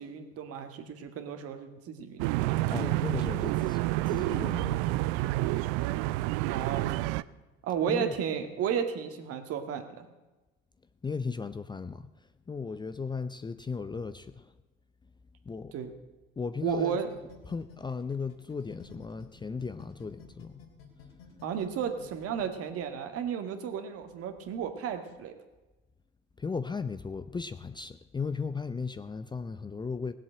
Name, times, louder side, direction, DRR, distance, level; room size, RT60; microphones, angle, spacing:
voice 1, 0.0-2.4 6.5-7.0 7.6-10.1 15.7-15.9 16.6-17.1 21.4-25.3, right 8 dB, 50° right, 7 dB, 1.9 m, -33 dB
sound 1, 2.2-7.2, right 18 dB, 70° right, 0.5 m, -29 dB
voice 2, 2.7-5.1 7.9-8.2 11.0-14.5 15.4-15.7 16.4-17.0 17.5-20.6 21.0-21.4 26.4-30.1, left 5 dB, 15° left, 12 dB, 0.6 m, -36 dB
sound 2, 16.7-19.3 19.6-22.5, left 7 dB, 80° left, 3.8 m, -52 dB
17.0 x 7.7 x 7.7 m, 1.1 s
hypercardioid pair, 80°, 29 cm